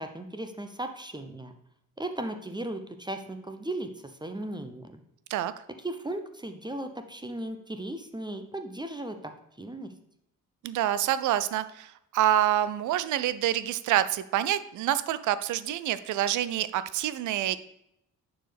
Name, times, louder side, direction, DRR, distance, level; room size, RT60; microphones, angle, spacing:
voice 1, 0.0-1.5 2.0-5.0 5.8-9.9, right 1 dB, 10° right, 7 dB, 0.8 m, -36 dB
voice 2, 10.6-17.6, right 12 dB, 40° right, 14 dB, 0.5 m, -27 dB
11.0 x 4.6 x 3.4 m, 0.80 s
figure-of-eight pair, 40°, 47 cm